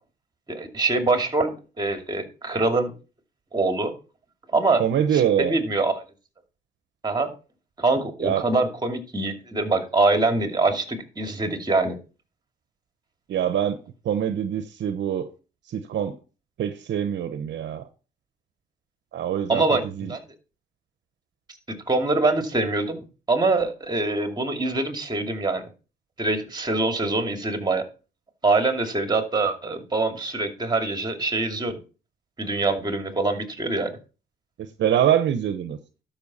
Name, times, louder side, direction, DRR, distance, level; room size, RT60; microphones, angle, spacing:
voice 1, 0.5-2.9 3.5-3.9 4.5-4.8 5.1-6.0 7.0-7.3 7.8-12.0 19.5-20.2 21.9-23.0 23.3-25.6 26.2-27.8 28.4-31.8 32.4-33.9, right 3 dB, 20° right, 5 dB, 2.4 m, -24 dB
voice 2, 4.8-5.6 8.2-8.4 13.3-13.8 14.0-15.3 15.7-16.2 16.6-17.9 19.1-20.1 34.6-35.8, right 9 dB, 65° right, 10 dB, 1.0 m, -24 dB
12.0 x 5.7 x 4.2 m, 0.33 s
cardioid pair, 90°, 20 cm